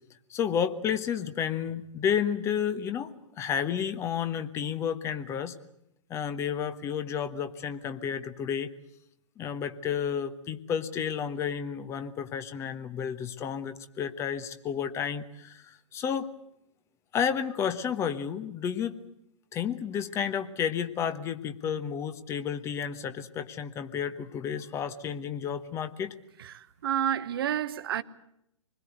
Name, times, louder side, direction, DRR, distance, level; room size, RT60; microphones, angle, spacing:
voice 1, 0.3-5.5 6.1-8.7 9.4-16.3 17.1-18.9 19.5-26.1, left 8 dB, 15° left, 1.2 m, -31 dB
voice 2, 26.4-28.0, right 10 dB, 45° right, 1.2 m, -30 dB
26.0 x 21.0 x 8.0 m
figure-of-eight pair, 120°, 17 cm